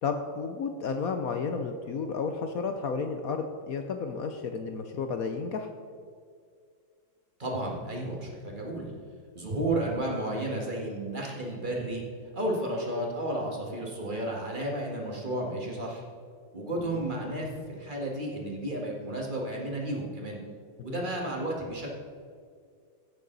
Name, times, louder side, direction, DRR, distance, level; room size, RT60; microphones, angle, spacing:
voice 1, 0.0-5.7 20.9-21.0, left 5 dB, 70° left, 6 dB, 0.8 m, -32 dB
voice 2, 7.4-8.9 9.4-12.0 12.3-16.0 16.5-20.4 20.8-21.9, right 1 dB, 25° right, -1 dB, 1.7 m, -32 dB
16.0 x 6.8 x 4.0 m, 2.2 s
omnidirectional pair, 2.2 m